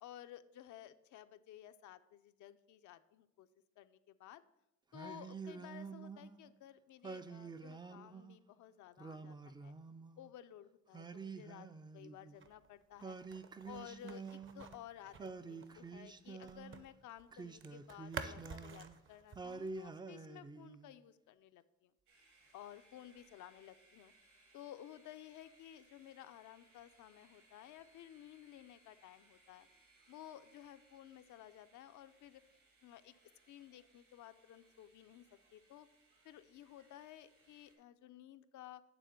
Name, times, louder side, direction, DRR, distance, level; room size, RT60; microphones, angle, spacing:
voice 1, 0.0-3.5 3.8-4.4 4.9-9.7 10.2-11.7 11.9-13.2 13.7-21.9 22.5-24.1 24.5-29.7 30.1-32.4 32.8-33.1 33.5-35.3 35.5-35.9 36.2-38.8, left 12 dB, 75° left, 11 dB, 0.5 m, -55 dB
Singing, 4.9-6.4 7.0-8.4 9.0-10.3 10.9-12.5 13.0-14.8 15.2-16.8 17.3-19.0 19.4-21.0, right 4 dB, 15° right, 0.3 m, -48 dB
sound 1, 12.3-16.9 17.2-19.9, right 5 dB, 40° right, 0.7 m, -51 dB
sound 2, 22.1-37.7, right 2 dB, 80° right, 2.9 m, -69 dB
9.1 x 3.7 x 6.5 m, 0.86 s
cardioid pair, 90°, 30 cm